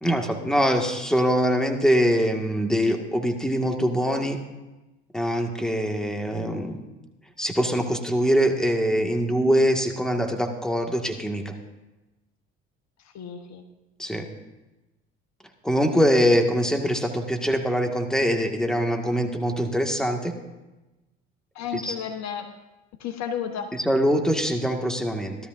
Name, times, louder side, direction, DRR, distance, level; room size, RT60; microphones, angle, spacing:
voice 1, 0.0-4.4 5.1-6.8 7.4-11.5 14.0-14.3 15.6-20.3 21.7-22.0 23.7-25.4, equal, ahead, 3 dB, 1.8 m, -23 dB
voice 2, 13.1-13.6 21.5-22.5 23.0-23.7, left 8 dB, 60° left, 7 dB, 1.2 m, -32 dB
17.0 x 12.5 x 2.6 m, 1.1 s
hypercardioid pair, 65°, 30 cm